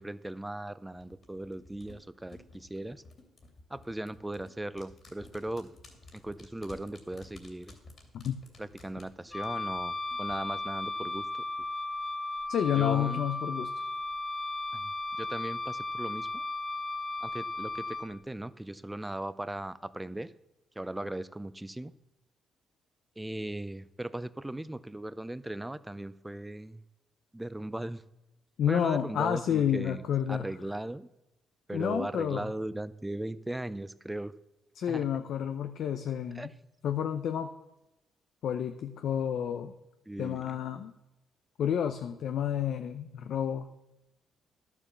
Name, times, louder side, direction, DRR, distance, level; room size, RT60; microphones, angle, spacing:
voice 1, 0.0-3.0 3.7-5.7 6.1-7.7 8.6-11.3 12.8-13.2 14.7-14.9 15.2-16.4 17.2-20.3 20.8-21.9 23.2-26.8 27.3-28.0 28.7-30.0 30.3-31.1 31.7-34.3 34.9-35.1 36.3-36.5 40.1-40.6, right 1 dB, 10° right, 16 dB, 0.5 m, -38 dB
sound 1, 1.0-10.4 10.7-10.8, left 2 dB, 45° left, 2.9 m, -54 dB
Wind instrument woodwind instrument, 9.3-18.1, left 2 dB, 20° left, 0.9 m, -35 dB
voice 2, 12.5-13.7 28.6-30.4 31.7-32.5 34.8-36.5 36.8-37.5 38.4-39.7 40.2-40.9 41.6-43.7, left 9 dB, 70° left, 8 dB, 0.7 m, -30 dB
11.5 x 7.3 x 6.8 m, 0.92 s
cardioid pair, 90°, 0 cm